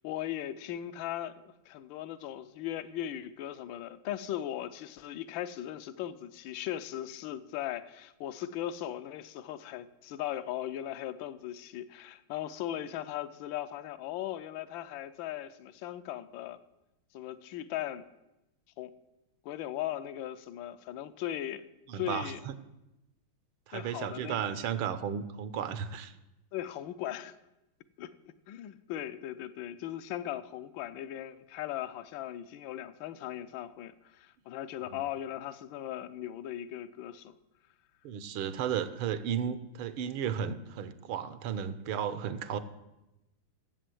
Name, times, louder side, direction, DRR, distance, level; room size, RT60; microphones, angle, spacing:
voice 1, 0.0-16.6 17.1-18.0 18.8-18.9 19.4-21.7 21.9-22.4 23.7-24.5 26.5-27.4 28.0-28.1 28.5-37.3, left 12 dB, 70° left, 1.4 m, -38 dB
voice 2, 21.9-22.5 23.7-26.1 34.9-35.0 38.0-42.6, right 8 dB, 85° right, 1.7 m, -34 dB
14.5 x 8.2 x 7.8 m
omnidirectional pair, 2.3 m